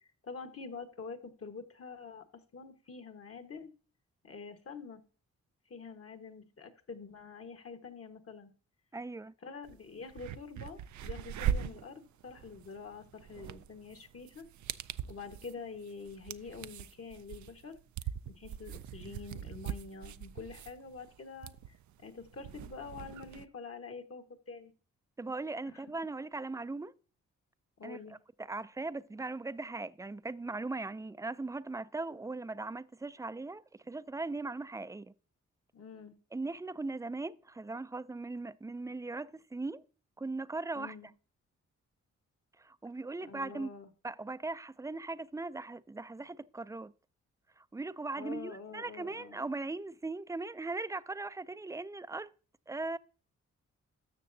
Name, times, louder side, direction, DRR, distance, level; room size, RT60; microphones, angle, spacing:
voice 1, 0.0-3.7 4.2-5.0 5.7-8.5 9.4-14.5 15.1-17.8 18.3-21.5 22.0-24.7 25.7-25.8 27.8-28.2 35.7-36.1 40.7-41.1 43.2-43.9 48.2-49.4, left 4 dB, 50° left, 1.4 m, -46 dB
voice 2, 8.9-9.3 25.2-26.9 27.8-28.0 28.5-35.1 36.3-39.8 40.2-40.9 42.6-43.7 44.0-46.9 47.6-52.3 52.7-53.0, right 3 dB, 10° right, 0.4 m, -39 dB
sound 1, 9.6-9.7 10.1-23.4, right 9 dB, 70° right, 0.5 m, -41 dB
13.0 x 6.6 x 2.7 m
cardioid pair, 60°, 30 cm